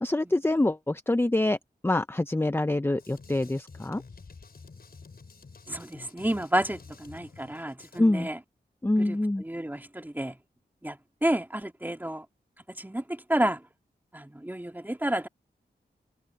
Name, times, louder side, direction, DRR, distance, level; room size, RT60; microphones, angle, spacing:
voice 1, 0.0-1.6 1.8-4.0 8.0-8.3 8.8-9.4, left 1 dB, 15° left, 0.8 m, -25 dB
Drum kit, 3.0-8.0, left 4 dB, 60° left, 5.8 m, -49 dB
voice 2, 5.7-8.4 9.0-10.4 10.8-12.3 12.7-13.6 14.1-15.3, right 1 dB, 10° right, 2.1 m, -30 dB
wide cardioid pair, 70°, 18 cm